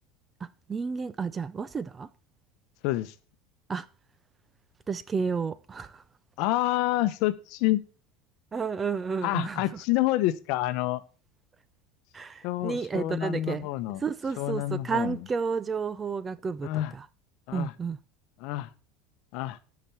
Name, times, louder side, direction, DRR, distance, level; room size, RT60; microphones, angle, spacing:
voice 1, 0.4-2.1 3.7-3.9 4.9-6.0 8.5-9.6 12.1-13.7 14.0-17.1 17.5-18.0, right 5 dB, 15° right, 0.4 m, -31 dB
voice 2, 2.8-3.1 6.4-7.8 9.2-11.0 12.4-14.0 14.4-15.2 16.6-16.9 17.5-17.7 18.4-18.7 19.3-19.6, left 16 dB, 55° left, 0.9 m, -28 dB
9.1 x 5.9 x 6.9 m
supercardioid pair, 160°, 0 cm